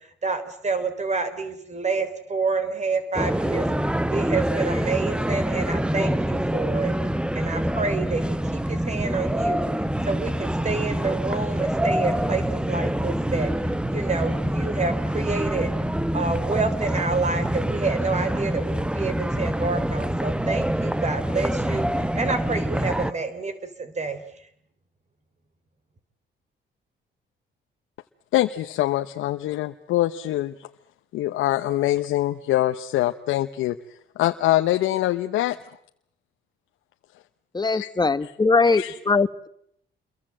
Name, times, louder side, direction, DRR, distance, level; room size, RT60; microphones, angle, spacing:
voice 1, 0.2-3.7 4.1-6.9 7.3-9.7 10.1-13.5 13.9-15.7 16.1-23.5 23.8-24.2, right 4 dB, 35° right, 11 dB, 3.9 m, -28 dB
sound 1, 3.1-23.1, right 1 dB, 5° right, 1.0 m, -25 dB
voice 2, 28.3-30.7 31.1-35.6 37.7-37.9 38.2-38.3 38.6-39.0, left 14 dB, 90° left, 7 dB, 1.0 m, -24 dB
voice 3, 37.5-39.5, left 4 dB, 20° left, 13 dB, 1.3 m, -21 dB
28.5 x 22.5 x 7.7 m, 0.70 s
cardioid pair, 90°, 20 cm